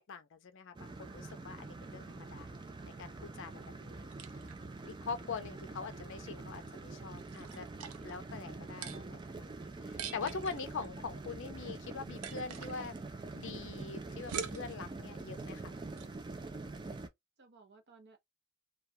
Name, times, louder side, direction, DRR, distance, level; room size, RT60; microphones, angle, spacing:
voice 1, 0.0-2.5 2.8-4.1 4.8-7.7 8.0-13.0 13.3-15.8, left 5 dB, 60° left, 0.5 m, -43 dB
sound 1, 0.7-17.1, right 3 dB, 20° right, 0.3 m, -45 dB
voice 2, 3.8-4.3 17.4-18.2, right 4 dB, 50° right, 0.8 m, -59 dB
sound 2, 3.8-16.2, right 8 dB, 85° right, 0.5 m, -48 dB
2.3 x 2.2 x 2.6 m
head